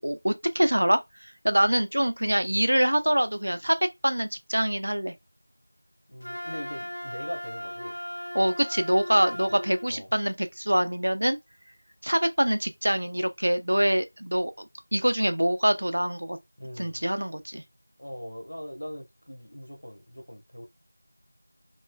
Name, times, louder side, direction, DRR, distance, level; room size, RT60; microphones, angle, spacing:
voice 1, 0.0-3.8 4.0-5.1 8.3-11.4 12.0-16.4 16.8-17.6, equal, 65° right, 0.4 m, -25 dB
voice 2, 6.1-8.0 9.5-9.6 9.9-10.1 16.6-17.1 18.0-20.7, equal, 90° left, 1.1 m, -41 dB
Wind instrument woodwind instrument, 6.2-9.9, equal, 70° left, 0.4 m, -37 dB
3.0 x 2.1 x 2.2 m
figure-of-eight pair, 180°, 0 cm